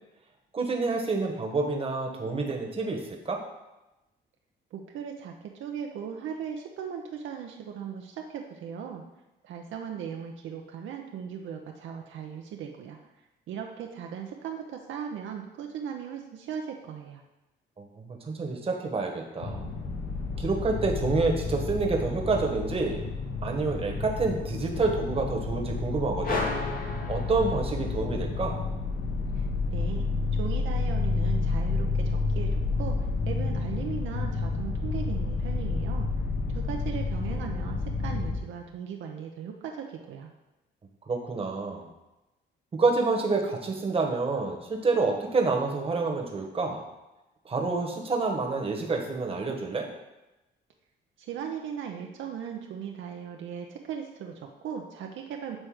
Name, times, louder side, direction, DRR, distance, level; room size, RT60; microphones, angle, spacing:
voice 1, 0.5-3.0 3.2-3.4 17.8-19.7 20.4-23.0 23.4-26.4 27.1-28.6 41.1-41.9 42.8-46.8 47.4-49.9, right 3 dB, 30° right, 1 dB, 1.2 m, -28 dB
voice 2, 4.7-9.0 9.4-13.0 13.5-17.2 29.3-29.4 29.7-30.1 30.3-33.0 33.2-36.1 36.5-40.3 51.2-55.6, right 7 dB, 75° right, 2 dB, 0.6 m, -38 dB
sound 1, 19.4-38.4, left 3 dB, 85° left, 1.1 m, -30 dB
sound 2, 26.2-28.0, left 3 dB, 45° left, 1.1 m, -33 dB
7.5 x 3.2 x 4.8 m, 1.0 s
cardioid pair, 90°, 20 cm